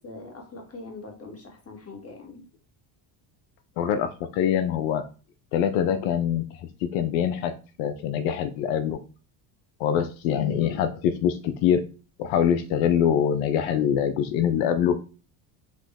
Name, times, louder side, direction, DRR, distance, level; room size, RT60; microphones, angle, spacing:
voice 1, 0.0-2.5, left 3 dB, 30° left, 1 dB, 2.0 m, -42 dB
voice 2, 3.8-5.0 5.5-7.5 7.8-9.0 9.8-11.8 12.2-15.0, left 9 dB, 80° left, 8 dB, 0.7 m, -24 dB
5.0 x 3.0 x 3.5 m, 0.36 s
supercardioid pair, 80°, 50 cm